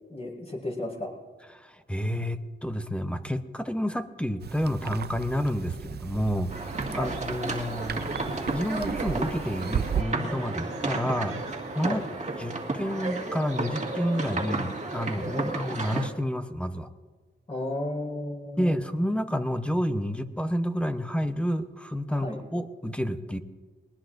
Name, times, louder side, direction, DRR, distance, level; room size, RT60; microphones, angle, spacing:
voice 1, 0.1-1.1 6.9-7.2 11.8-12.0 15.3-15.5 17.5-18.9 22.1-22.4, left 1 dB, 30° left, -2 dB, 5.4 m, -34 dB
voice 2, 1.5-11.4 11.8-12.1 12.4-16.9 18.6-23.4, equal, 5° left, 9 dB, 0.8 m, -30 dB
sound 1, 4.4-10.0, right 9 dB, 50° right, 0.4 m, -35 dB
sound 2, 6.5-16.1, right 2 dB, 35° right, 2.0 m, -33 dB
sound 3, 6.7-12.2, right 5 dB, 80° right, 1.6 m, -45 dB
21.0 x 20.0 x 2.6 m, 1.4 s
cardioid pair, 80°, 21 cm